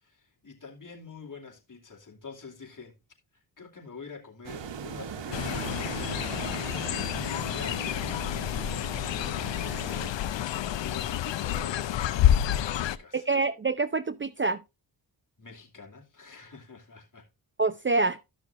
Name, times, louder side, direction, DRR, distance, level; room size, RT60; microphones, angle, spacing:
voice 1, 0.0-3.0 3.3-6.4 6.9-8.2 8.7-13.3 15.4-17.3, left 5 dB, 45° left, 2.6 m, -46 dB
sound 1, 4.4-10.1, right 7 dB, 80° right, 1.2 m, -39 dB
Fowl, 5.3-13.0, left 11 dB, 85° left, 0.6 m, -29 dB
voice 2, 13.1-14.6 17.6-18.2, right 3 dB, 30° right, 0.6 m, -26 dB
13.0 x 6.2 x 2.6 m
cardioid pair, 55°, 43 cm